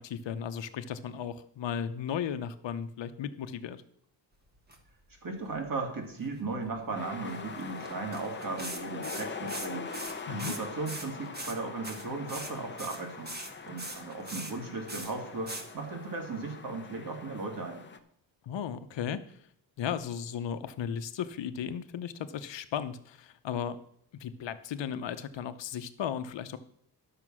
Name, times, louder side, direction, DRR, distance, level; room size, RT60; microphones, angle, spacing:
voice 1, 0.0-3.8 10.3-10.5 18.5-19.2 19.8-23.8 24.2-26.6, left 8 dB, 70° left, 10 dB, 0.9 m, -35 dB
sound 1, 4.5-4.8 5.1-5.2 5.5-5.7 6.2-6.9 7.3-10.6 10.9-11.6 11.8-12.5 12.8-14.5 14.9-15.1 15.5-15.7, right 1 dB, 20° right, 1.3 m, -41 dB
voice 2, 5.2-9.9 10.3-13.3 13.6-17.8, right 3 dB, 45° right, 3 dB, 2.5 m, -36 dB
sound 2, 6.9-18.0, left 5 dB, 25° left, 0.8 m, -43 dB
11.0 x 6.7 x 6.2 m, 0.65 s
wide cardioid pair, 135°, 46 cm